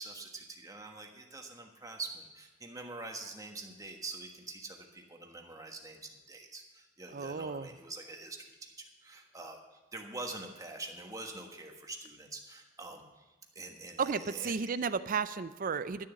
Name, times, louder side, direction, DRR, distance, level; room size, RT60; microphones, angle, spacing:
voice 1, 0.0-8.7 9.0-9.6 9.9-13.2 13.5-14.5, right 3 dB, 15° right, 3 dB, 1.3 m, -45 dB
voice 2, 7.1-7.7 14.0-16.1, right 5 dB, 40° right, 14 dB, 0.5 m, -33 dB
12.0 x 7.1 x 8.1 m, 1.2 s
head